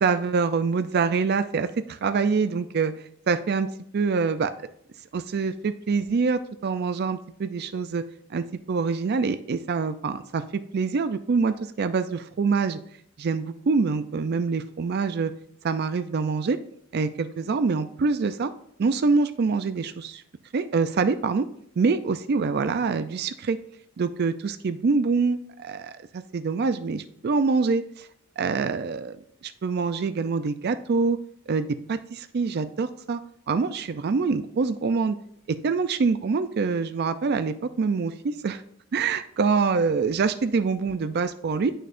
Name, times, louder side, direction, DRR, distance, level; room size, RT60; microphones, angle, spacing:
voice 1, 0.0-2.9 3.3-3.7 3.9-4.5 5.1-8.0 8.3-10.4 10.7-12.8 13.2-15.3 15.6-16.6 16.9-18.5 18.8-20.2 20.5-21.5 21.8-23.6 24.0-28.1 28.4-29.2 29.4-31.2 31.5-33.2 33.5-35.2 35.5-38.6 38.9-41.7, right 4 dB, 50° right, 11 dB, 0.4 m, -25 dB
8.8 x 6.4 x 2.5 m, 0.69 s
head